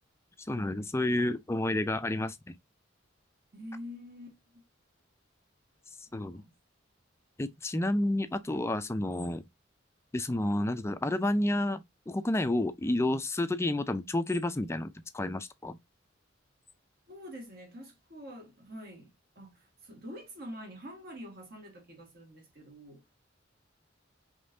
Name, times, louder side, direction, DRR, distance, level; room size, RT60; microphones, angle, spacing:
voice 1, 0.5-2.4 6.1-6.4 7.4-9.5 10.1-15.8, left 1 dB, 15° left, 0.4 m, -30 dB
voice 2, 3.5-4.6 6.3-6.5 17.1-23.0, equal, 55° right, 1.7 m, -46 dB
5.2 x 3.3 x 2.6 m
head